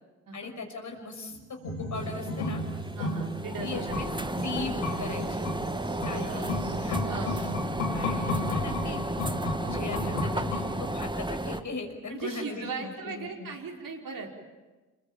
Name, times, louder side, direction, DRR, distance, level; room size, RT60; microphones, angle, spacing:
voice 1, 0.3-2.6 3.6-4.1 4.4-5.4 6.0-7.0 7.9-9.0 9.7-13.5, left 3 dB, 50° left, 3 dB, 6.1 m, -38 dB
sound 1, 1.3-7.6, right 4 dB, 85° right, 2.8 m, -45 dB
sound 2, 1.6-11.2 11.5-11.6, left 3 dB, 90° left, 3.4 m, -33 dB
sound 3, 1.9-11.6, right 1 dB, 10° right, 1.9 m, -33 dB
voice 2, 3.0-4.1 5.9-6.2 7.0-7.4 12.1-14.3, right 4 dB, 55° right, 0 dB, 5.4 m, -38 dB
27.5 x 21.5 x 9.0 m, 1.2 s
hypercardioid pair, 45°, 39 cm